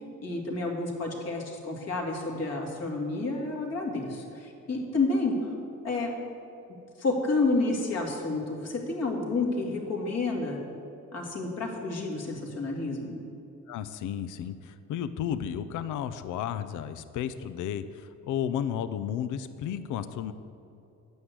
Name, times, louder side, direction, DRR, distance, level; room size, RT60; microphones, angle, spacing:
voice 1, 0.2-5.5 5.8-6.1 7.0-10.6 11.1-13.2, left 3 dB, 55° left, 0 dB, 2.4 m, -30 dB
voice 2, 13.7-20.3, left 9 dB, 80° left, 12 dB, 0.6 m, -33 dB
9.5 x 6.3 x 8.1 m, 2.8 s
cardioid pair, 90°, 30 cm